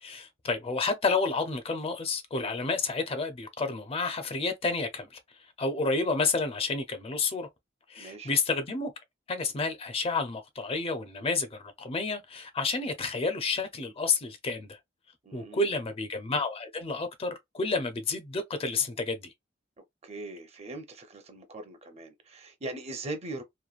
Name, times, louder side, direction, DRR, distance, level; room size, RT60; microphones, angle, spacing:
voice 1, 0.0-5.2 5.6-7.5 7.9-8.9 9.3-14.8 15.3-19.3, left 3 dB, 30° left, 0.5 m, -30 dB
voice 2, 8.0-8.3 15.2-15.8 20.0-23.4, right 2 dB, 35° right, 0.6 m, -40 dB
3.0 x 2.2 x 2.4 m
head